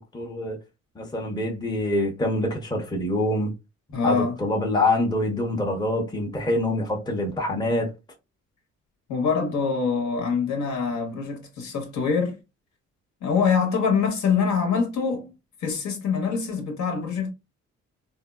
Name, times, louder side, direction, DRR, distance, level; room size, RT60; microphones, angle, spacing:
voice 1, 0.1-0.6 1.0-3.5 4.0-7.9, left 1 dB, 15° left, 0.7 m, -25 dB
voice 2, 3.9-4.4 9.1-12.4 13.2-15.3 15.6-17.3, left 5 dB, 70° left, 1.1 m, -24 dB
3.3 x 2.1 x 2.2 m
cardioid pair, 90°, 30 cm